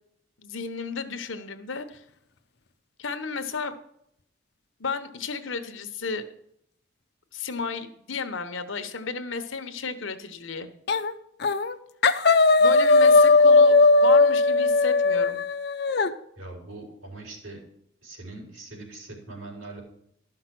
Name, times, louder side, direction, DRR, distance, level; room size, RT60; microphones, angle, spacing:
voice 1, 0.4-2.0 3.0-3.7 4.8-6.2 7.3-10.7 12.6-15.4, left 4 dB, 75° left, 9 dB, 1.1 m, -33 dB
sound 1, 10.9-11.1 11.4-11.7 12.0-16.1, left 3 dB, 55° left, 0.6 m, -18 dB
voice 2, 16.4-17.6 18.0-19.8, right 2 dB, 80° right, 0 dB, 3.9 m, -41 dB
13.0 x 5.9 x 6.0 m, 0.75 s
head